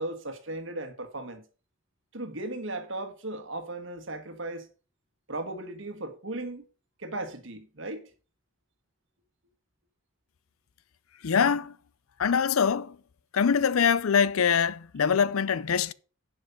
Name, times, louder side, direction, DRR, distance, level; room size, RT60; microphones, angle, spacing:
voice 1, 0.0-1.4 2.1-4.7 5.3-6.7 7.0-8.0, right 2 dB, 65° right, 1.5 m, -36 dB
voice 2, 11.2-11.7 12.2-13.0 13.3-15.9, left 6 dB, 90° left, 0.5 m, -24 dB
10.5 x 5.5 x 5.5 m
head